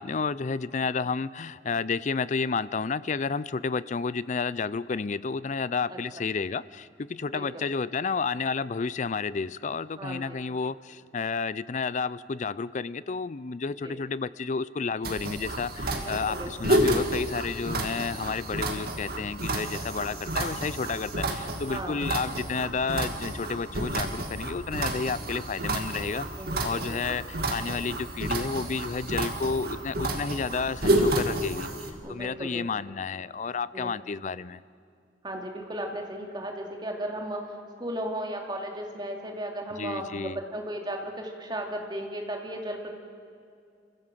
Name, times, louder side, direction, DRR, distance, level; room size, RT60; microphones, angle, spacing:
voice 1, 0.0-26.3 26.6-34.6 39.8-40.4, left 5 dB, 45° left, 18 dB, 0.5 m, -31 dB
voice 2, 10.0-10.4 13.8-14.0 15.9-16.5 21.2-22.1 26.4-27.2 32.0-32.6 33.7-33.9 35.2-42.9, right 1 dB, 25° right, 1 dB, 2.7 m, -36 dB
sound 1, 15.0-31.9, right 1 dB, 60° right, 2.1 m, -30 dB
27.0 x 15.5 x 7.5 m, 2.4 s
head